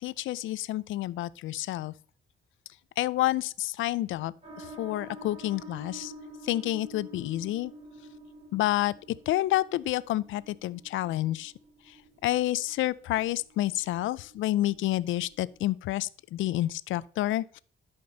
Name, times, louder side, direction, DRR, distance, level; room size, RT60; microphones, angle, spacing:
voice 1, 0.0-1.9 3.0-6.1 6.4-7.7 8.5-8.9 9.3-11.5 11.9-12.0 12.2-17.6, left 15 dB, 80° left, 0.5 m, -29 dB
sound 1, 4.4-15.5, right 1 dB, 30° right, 4.0 m, -49 dB
11.5 x 5.2 x 4.0 m
cardioid pair, 90°, 20 cm